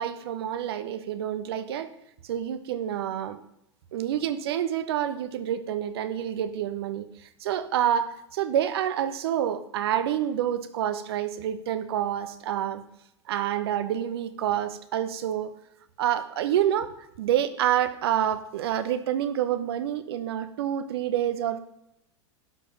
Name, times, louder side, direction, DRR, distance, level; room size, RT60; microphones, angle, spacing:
voice 1, 0.0-1.9 2.2-3.4 3.9-7.1 7.4-12.8 13.3-15.5 16.0-16.9 17.2-21.6, right 10 dB, 55° right, 11 dB, 1.0 m, -28 dB
11.5 x 5.2 x 5.8 m, 0.82 s
figure-of-eight pair, 90°, 15 cm